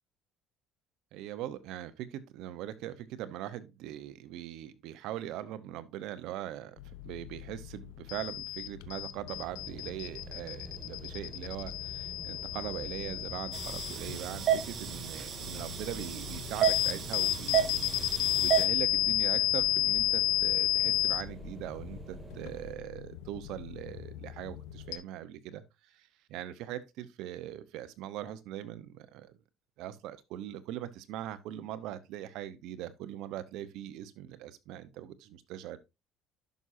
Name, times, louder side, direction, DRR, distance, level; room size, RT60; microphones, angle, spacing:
voice 1, 1.1-29.4 29.8-35.8, right 12 dB, 75° right, 1.0 m, -41 dB
sound 1, 6.8-25.0, left 13 dB, 90° left, 0.8 m, -33 dB
sound 2, 9.3-22.8, right 1 dB, 15° right, 2.2 m, -48 dB
sound 3, 13.5-18.7, right 9 dB, 50° right, 2.1 m, -32 dB
10.5 x 6.4 x 2.7 m
cardioid pair, 105°, 0 cm